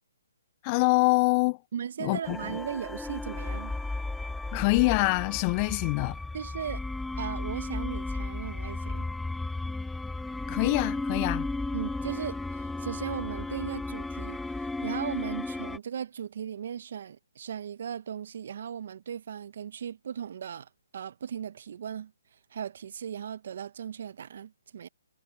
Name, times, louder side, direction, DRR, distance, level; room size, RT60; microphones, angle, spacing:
voice 1, 0.6-1.6 2.0-2.4 4.5-6.2 10.5-11.5, left 29 dB, 30° left, 0.3 m, -25 dB
voice 2, 1.7-3.7 6.3-6.8 7.2-9.1 11.7-14.4 14.8-22.1 22.5-24.9, right 8 dB, 55° right, 0.8 m, -37 dB
sound 1, 2.2-15.8, left 2 dB, 5° left, 1.0 m, -34 dB
hypercardioid pair, 150°, 0 cm